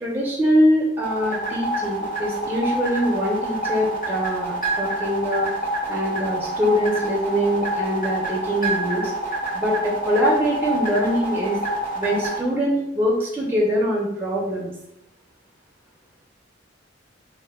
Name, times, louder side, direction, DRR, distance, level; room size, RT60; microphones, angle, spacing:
voice 1, 0.0-5.5 5.9-9.1 9.5-11.6 11.9-14.7, equal, 10° right, -4 dB, 0.4 m, -23 dB
sound 1, 1.0-12.4, right 1 dB, 45° left, 0.8 m, -27 dB
2.1 x 2.1 x 3.3 m, 0.79 s
head